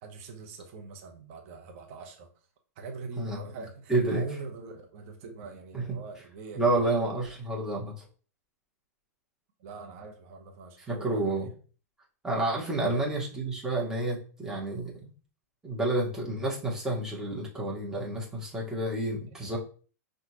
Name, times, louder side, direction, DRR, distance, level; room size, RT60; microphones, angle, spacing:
voice 1, 0.0-2.3 2.8-6.7 9.6-11.5 12.8-13.0 19.3-19.6, right 4 dB, 50° right, 2 dB, 1.1 m, -43 dB
voice 2, 3.9-4.2 5.7-6.0 6.6-8.0 10.9-11.5 12.2-14.9 15.6-19.6, right 2 dB, 5° right, -4 dB, 1.5 m, -29 dB
5.8 x 2.6 x 3.0 m, 0.40 s
figure-of-eight pair, 105°, 9 cm